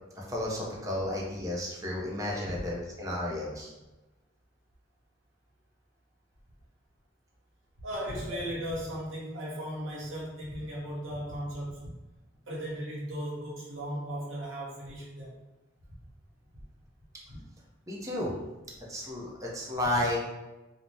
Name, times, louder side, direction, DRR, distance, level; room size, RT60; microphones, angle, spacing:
voice 1, 0.2-3.7 17.9-18.3 18.9-20.2, left 1 dB, 15° right, -3 dB, 0.5 m, -32 dB
voice 2, 7.8-11.9 12.5-15.4 17.3-17.4, equal, 75° right, -5 dB, 1.0 m, -37 dB
2.6 x 2.0 x 3.3 m, 1.1 s
head